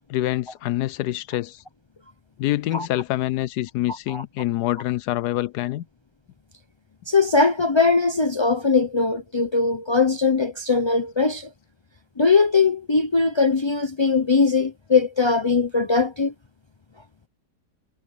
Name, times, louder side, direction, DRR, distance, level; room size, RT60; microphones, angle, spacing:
voice 1, 0.0-1.6 2.4-5.8, left 15 dB, 75° left, 1.1 m, -26 dB
voice 2, 7.1-11.5 12.2-16.3, left 4 dB, 35° left, 0.4 m, -20 dB
omnidirectional pair, 1.9 m